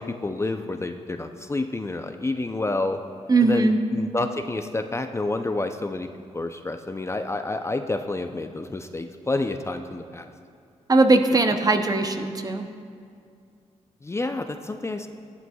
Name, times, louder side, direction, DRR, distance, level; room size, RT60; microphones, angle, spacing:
voice 1, 0.0-3.0 3.4-10.3 14.0-15.1, left 2 dB, 20° left, 7 dB, 0.5 m, -29 dB
voice 2, 3.3-3.8 10.9-12.7, right 3 dB, 30° right, 6 dB, 0.8 m, -20 dB
13.5 x 11.0 x 2.3 m, 2.3 s
cardioid pair, 60°, 13 cm